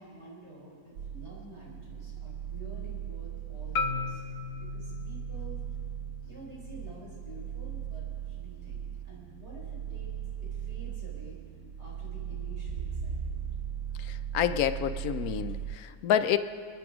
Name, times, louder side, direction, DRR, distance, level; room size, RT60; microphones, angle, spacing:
voice 1, 0.0-4.2 4.5-5.6 6.3-10.1 10.4-11.4 11.8-13.4, right 1 dB, 50° right, -4 dB, 4.7 m, -46 dB
sound 1, 1.0-15.8, right 10 dB, 80° right, 1.1 m, -38 dB
Marimba xylophone, 3.8-7.9, left 4 dB, 55° left, 0.8 m, -38 dB
voice 2, 14.0-16.4, left 10 dB, 80° left, 11 dB, 1.1 m, -28 dB
28.0 x 9.5 x 5.0 m, 2.2 s
omnidirectional pair, 1.5 m